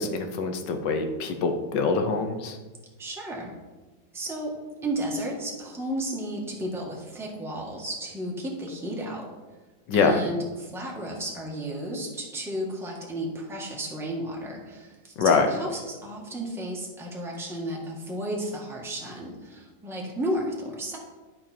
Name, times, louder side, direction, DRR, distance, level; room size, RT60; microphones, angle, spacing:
voice 1, 0.0-2.6 9.9-10.2 15.2-15.5, left 4 dB, 80° left, 6 dB, 1.6 m, -24 dB
voice 2, 3.0-3.5 4.1-4.5 4.8-9.3 9.9-21.0, right 1 dB, ahead, -3 dB, 1.4 m, -33 dB
11.5 x 5.3 x 4.4 m, 1.2 s
omnidirectional pair, 1.9 m